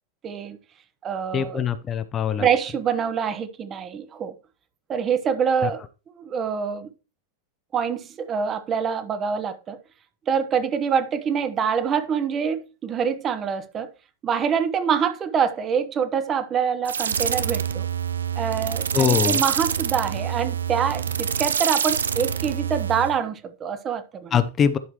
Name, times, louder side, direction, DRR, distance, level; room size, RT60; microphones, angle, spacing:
voice 1, 0.2-0.6 1.0-1.6 2.4-4.3 4.9-5.8 6.2-6.9 7.7-9.8 10.3-13.9 14.2-17.9 18.4-24.4, right 7 dB, 25° right, 0.9 m, -25 dB
voice 2, 1.3-2.5 5.6-5.7 18.9-19.4 24.3-24.8, left 8 dB, 25° left, 0.6 m, -22 dB
sound 1, 16.8-23.2, right 8 dB, 70° right, 0.5 m, -26 dB
11.0 x 5.9 x 3.0 m
figure-of-eight pair, 90°, 0 cm